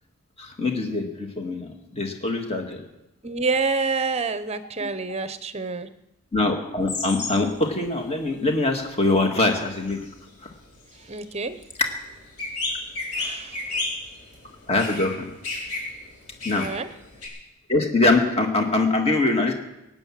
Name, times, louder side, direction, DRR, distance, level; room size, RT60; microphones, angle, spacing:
voice 1, 0.4-2.8 4.8-4.9 6.3-10.0 10.4-10.5 11.8-11.9 14.7-15.3 16.4-16.7 17.7-19.5, left 2 dB, 25° left, 3 dB, 2.0 m, -23 dB
voice 2, 3.2-5.9 11.1-11.6 13.1-13.9 16.5-16.9, right 4 dB, 30° right, 11 dB, 0.8 m, -28 dB
sound 1, 6.8-7.5 7.8-17.3, left 2 dB, 85° left, 4.4 m, -33 dB
17.5 x 9.2 x 7.4 m, 0.90 s
head